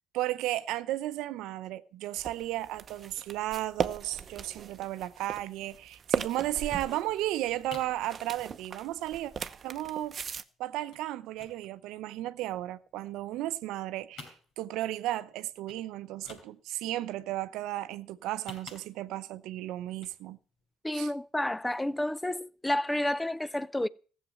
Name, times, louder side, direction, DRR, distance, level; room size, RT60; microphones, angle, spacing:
voice 1, 0.1-9.3 9.6-10.2 10.6-20.4 20.9-21.1, right 14 dB, 75° right, 0.7 m, -34 dB
sound 1, 2.2-10.4, right 6 dB, 45° right, 0.8 m, -38 dB
sound 2, 7.4-8.0 8.4-8.8 9.1-9.2 9.4-9.6 9.9-10.4 10.9-11.1 11.3-12.6 13.0-13.8 14.0-14.9 15.2-15.3 15.6-15.8 16.1-16.9 18.2-19.3 19.9-20.2 20.6-20.7, left 3 dB, 65° left, 5.5 m, -50 dB
voice 2, 20.8-23.9, left 1 dB, 10° left, 0.6 m, -30 dB
15.0 x 7.5 x 7.0 m
supercardioid pair, 65°, 0 cm